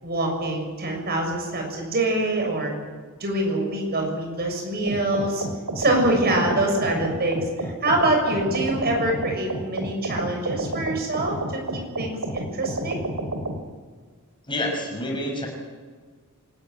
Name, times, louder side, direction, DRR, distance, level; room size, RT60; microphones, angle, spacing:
voice 1, 0.0-2.7 3.2-5.4 5.7-11.6 12.0-13.0, right 1 dB, 50° right, 2 dB, 6.7 m, -25 dB
sound 1, 4.9-13.6, right 1 dB, 75° right, 2.7 m, -30 dB
voice 2, 14.5-15.5, left 1 dB, 25° left, 1 dB, 5.8 m, -28 dB
27.0 x 14.5 x 9.3 m, 1.5 s
head